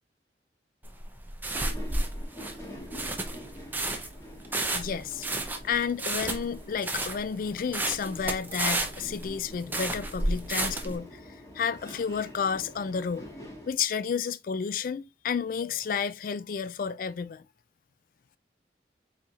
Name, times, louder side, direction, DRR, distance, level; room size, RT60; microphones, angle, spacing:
sound 1, 0.8-11.0, right 2 dB, 10° right, 0.6 m, -31 dB
sound 2, 1.5-13.7, equal, 15° left, 1.3 m, -46 dB
voice 1, 4.7-5.3 5.6-11.2 11.5-13.3 13.7-17.4, left 6 dB, 50° left, 0.3 m, -31 dB
4.4 x 4.1 x 2.4 m
head